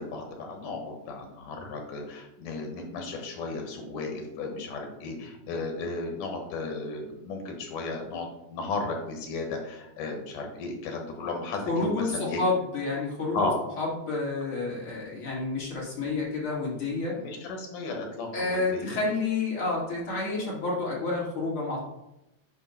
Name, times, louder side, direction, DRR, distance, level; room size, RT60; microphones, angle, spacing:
voice 1, 0.0-12.4 13.3-13.6 17.2-19.0, left 3 dB, 80° left, 2 dB, 2.8 m, -34 dB
voice 2, 11.7-13.4 13.8-17.1 18.3-21.8, left 3 dB, 45° left, -5 dB, 2.5 m, -29 dB
8.4 x 2.8 x 5.4 m, 0.89 s
omnidirectional pair, 3.6 m